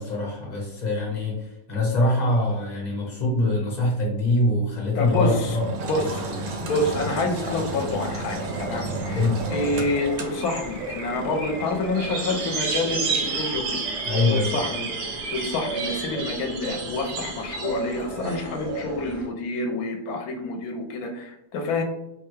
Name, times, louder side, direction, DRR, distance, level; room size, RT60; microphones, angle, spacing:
voice 1, 0.0-5.7 9.1-9.4 14.1-14.5, left 2 dB, 35° left, -2 dB, 0.8 m, -24 dB
voice 2, 4.9-14.0 14.3-14.9 15.3-21.8, left 2 dB, 70° left, 3 dB, 1.0 m, -28 dB
Engine, 5.0-12.6, right 2 dB, 65° right, 0.8 m, -33 dB
sound 1, 8.2-19.3, right 4 dB, 85° right, 1.3 m, -31 dB
3.3 x 2.2 x 3.1 m, 0.87 s
omnidirectional pair, 1.7 m